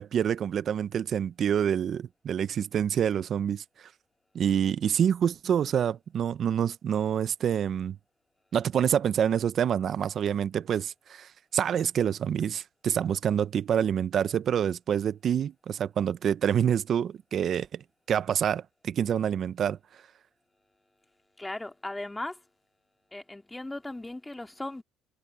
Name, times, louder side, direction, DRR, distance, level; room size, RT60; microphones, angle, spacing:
voice 1, 0.0-3.6 4.3-8.0 8.5-19.8, right 8 dB, 50° right, 0.8 m, -27 dB
voice 2, 21.4-22.4 23.1-24.8, left 2 dB, 10° left, 2.4 m, -37 dB
supercardioid pair, 85°, 0 cm